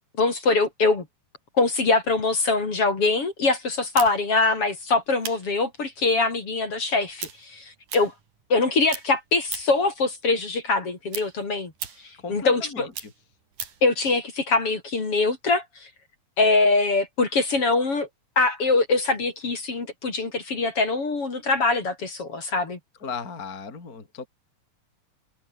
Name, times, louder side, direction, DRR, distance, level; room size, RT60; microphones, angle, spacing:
voice 1, 0.2-1.1 1.6-8.1 8.5-11.7 12.3-12.9 13.8-15.6 16.4-18.1 18.4-22.8, left 3 dB, 40° left, 4.3 m, -23 dB
sound 1, 3.9-8.6 8.9-9.9 10.3-13.9, right 7 dB, 60° right, 4.6 m, -38 dB
voice 2, 12.2-13.1 23.0-24.3, left 5 dB, 25° left, 3.5 m, -36 dB
omnidirectional pair, 4.1 m